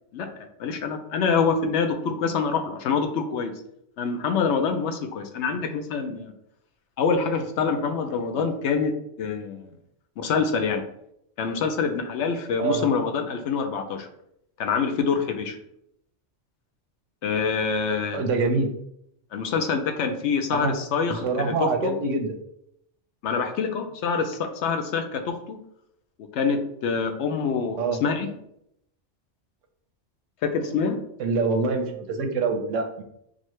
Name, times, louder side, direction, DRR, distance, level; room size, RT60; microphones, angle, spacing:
voice 1, 0.6-3.5 4.0-6.3 7.0-8.9 9.2-9.7 10.2-10.8 11.4-14.1 14.6-15.6 17.2-18.2 19.3-21.9 23.2-25.6 26.3-28.3 30.4-31.0, left 5 dB, 70° left, 6 dB, 0.8 m, -26 dB
voice 2, 18.1-18.7 20.5-20.7 21.1-22.3 27.8-28.0 31.2-33.0, right 4 dB, 85° right, 5 dB, 1.0 m, -25 dB
6.1 x 2.1 x 3.1 m, 0.76 s
omnidirectional pair, 1.3 m